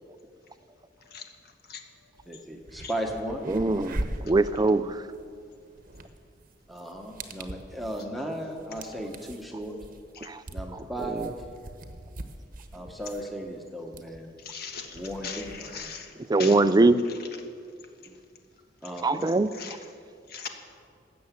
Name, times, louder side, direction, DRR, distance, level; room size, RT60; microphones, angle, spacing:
sound 1, 2.2-2.3 2.6-16.0, right 1 dB, 50° right, 1.0 m, -41 dB
voice 1, 2.3-3.4 6.7-9.8 10.5-11.4 12.7-14.4 14.9-15.9 18.1-18.2 18.8-19.3, right 1 dB, ahead, 1 dB, 1.1 m, -36 dB
voice 2, 3.5-5.0 10.3-10.4 11.2-11.3 16.3-17.0 19.0-19.5, right 2 dB, 20° right, 12 dB, 0.4 m, -22 dB
voice 3, 14.4-16.6 17.0-17.2 18.8-18.9 19.3-19.8 20.3-20.5, left 6 dB, 60° left, 4 dB, 1.5 m, -40 dB
18.0 x 6.9 x 8.3 m, 2.3 s
head